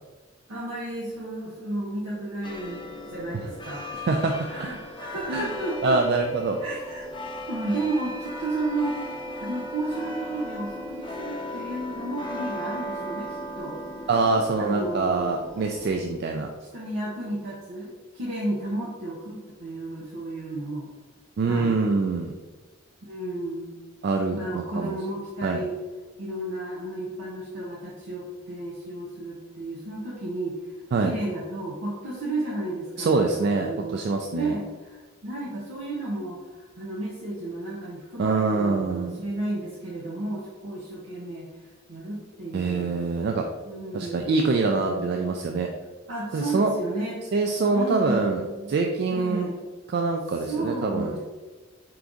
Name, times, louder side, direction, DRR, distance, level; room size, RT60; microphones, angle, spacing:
voice 1, 0.5-3.8 4.5-6.0 6.6-7.1 7.5-9.0 9.4-13.3 13.6-13.8 14.6-15.6 16.6-20.9 21.5-21.7 23.1-23.7 24.3-25.7 26.2-30.6 31.0-34.0 34.3-41.5 41.9-43.0 43.7-44.5 44.8-45.3 46.1-47.2 47.7-48.7 49.1-49.7 50.4-51.2, right 2 dB, 85° right, -5 dB, 0.8 m, -33 dB
sound 1, 2.4-16.0, equal, 25° left, 0.5 m, -36 dB
voice 2, 4.1-4.7 5.3-5.5 5.8-6.6 14.1-16.5 21.4-22.3 24.0-25.0 25.4-25.6 30.9-31.1 33.0-34.5 38.2-39.2 42.5-43.5 43.9-45.7 46.3-46.7 47.3-48.4 48.7-49.5 49.9-51.2, right 3 dB, 55° right, 2 dB, 0.3 m, -25 dB
4.5 x 2.6 x 3.6 m, 1.3 s
head